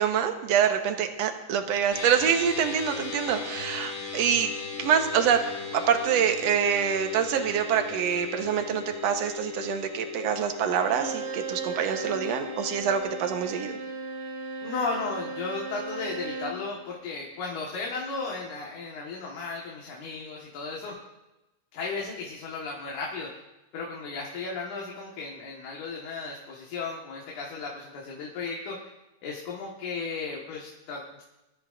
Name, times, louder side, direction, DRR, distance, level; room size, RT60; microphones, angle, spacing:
voice 1, 0.0-4.5 4.8-5.4 5.7-13.8, right 8 dB, 65° right, 5 dB, 2.1 m, -26 dB
sound 1, 1.9-13.0, left 5 dB, 45° left, 3.8 m, -38 dB
Bowed string instrument, 10.8-16.7, right 4 dB, 90° right, 3.3 m, -36 dB
voice 2, 14.6-21.0 21.7-23.3 23.7-28.8 29.2-31.2, left 4 dB, 90° left, -2 dB, 3.1 m, -35 dB
22.0 x 13.0 x 2.6 m, 1.0 s
omnidirectional pair, 3.4 m